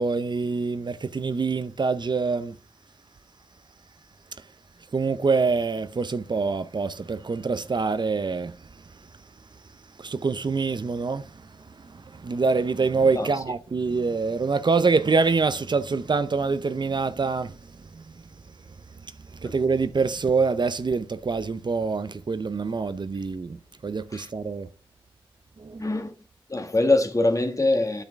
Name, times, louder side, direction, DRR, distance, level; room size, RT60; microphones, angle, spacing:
voice 1, 0.0-2.6 4.9-8.5 10.0-11.3 11.8-17.6 17.9-18.0 19.4-24.7 25.6-25.8, right 4 dB, 50° right, 0.6 m, -25 dB
voice 2, 25.8-26.1 26.5-28.0, left 2 dB, 35° left, 1.6 m, -23 dB
8.9 x 6.1 x 3.5 m
cardioid pair, 50°, 10 cm